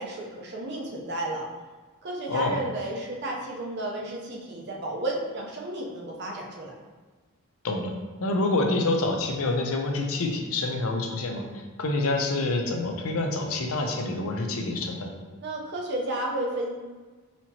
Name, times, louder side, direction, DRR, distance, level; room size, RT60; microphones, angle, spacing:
voice 1, 0.0-1.5 2.0-6.7 15.4-16.7, right 1 dB, 50° right, -2 dB, 0.6 m, -32 dB
voice 2, 2.3-2.6 7.6-7.9 8.2-11.5 11.8-15.1, left 2 dB, 65° left, 3 dB, 0.5 m, -27 dB
4.2 x 2.8 x 2.8 m, 1.3 s
head